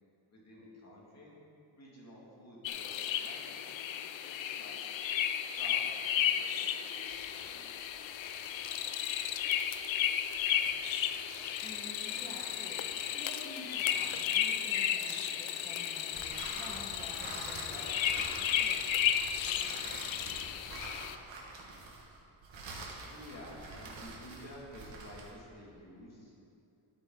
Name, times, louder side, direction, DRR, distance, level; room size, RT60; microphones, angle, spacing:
voice 1, 0.3-1.3 1.7-4.8 5.4-6.5 6.9-8.5 23.1-26.3, equal, 35° left, -5 dB, 2.5 m, -52 dB
sound 1, 2.6-21.1, left 10 dB, 75° left, 0.6 m, -34 dB
sound 2, 7.0-14.8 16.1-25.4, right 3 dB, 75° right, 1.8 m, -48 dB
voice 2, 11.6-12.8 13.1-18.9, equal, 5° left, -6 dB, 1.4 m, -50 dB
12.0 x 9.0 x 3.9 m, 2.7 s
wide cardioid pair, 150°, 47 cm